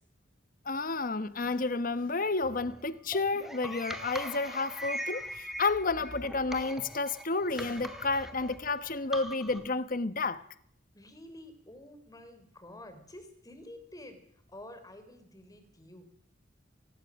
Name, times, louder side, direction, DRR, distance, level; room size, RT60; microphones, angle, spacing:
voice 1, 0.6-10.4, left 3 dB, 45° left, 1.1 m, -31 dB
sound 1, 2.4-9.7, equal, ahead, 2.6 m, -41 dB
voice 2, 10.9-14.2 14.5-16.0, left 1 dB, 20° left, 3.8 m, -49 dB
23.5 x 20.0 x 6.4 m
head